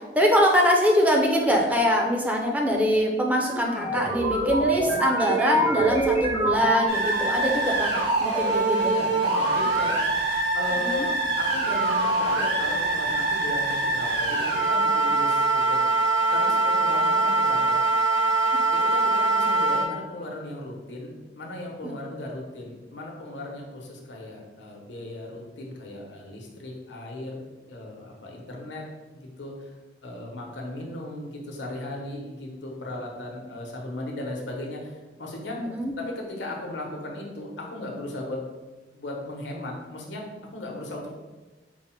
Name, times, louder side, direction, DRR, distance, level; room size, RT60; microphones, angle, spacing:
voice 1, 0.2-8.9 10.8-11.1 21.8-21.9 35.6-35.9, equal, 10° right, 0 dB, 0.4 m, -23 dB
sound 1, 3.4-7.6, right 2 dB, 55° right, 1.2 m, -26 dB
sound 2, 6.9-19.8, right 2 dB, 80° right, 1.2 m, -23 dB
voice 2, 8.8-10.0 10.5-15.8 16.3-17.8 18.7-29.7 30.0-35.6 36.0-38.4 38.9-41.1, left 1 dB, 85° left, 0 dB, 0.9 m, -36 dB
4.6 x 2.1 x 4.2 m, 1.2 s
head